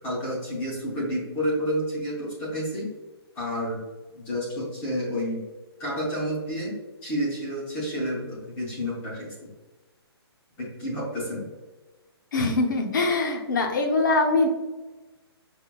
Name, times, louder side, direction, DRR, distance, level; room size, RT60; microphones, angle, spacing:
voice 1, 0.0-2.9 3.3-3.8 4.1-5.4 5.8-6.7 7.0-9.5 10.6-11.4, equal, 10° left, -5 dB, 0.6 m, -30 dB
voice 2, 12.3-14.5, left 3 dB, 45° left, 3 dB, 0.7 m, -23 dB
5.9 x 2.2 x 2.2 m, 1.2 s
hypercardioid pair, 175°, 14 cm